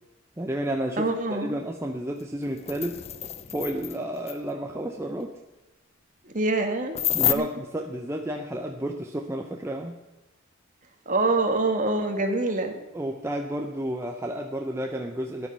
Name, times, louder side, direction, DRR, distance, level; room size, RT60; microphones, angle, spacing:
voice 1, 0.4-3.0 3.5-5.3 7.1-10.0 12.9-15.5, right 1 dB, 15° right, 2 dB, 0.7 m, -31 dB
voice 2, 1.0-1.6 6.2-7.5 11.0-12.8, right 2 dB, 40° right, 5 dB, 1.7 m, -26 dB
sound 1, 2.2-2.3 2.5-4.0 4.3-4.4 6.9-7.3, left 11 dB, 30° left, 0.5 m, -28 dB
13.5 x 10.0 x 5.6 m, 1.0 s
head